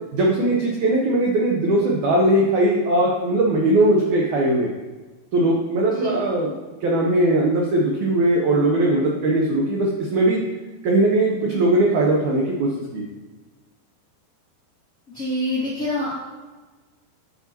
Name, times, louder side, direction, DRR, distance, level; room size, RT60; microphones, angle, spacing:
voice 1, 0.1-4.7 5.3-6.5 6.8-10.4 10.8-13.0, right 1 dB, 85° right, -1 dB, 1.7 m, -19 dB
voice 2, 5.8-6.2 15.1-16.1, left 1 dB, 40° left, -9 dB, 1.1 m, -26 dB
9.8 x 5.9 x 2.9 m, 1.3 s
omnidirectional pair, 4.7 m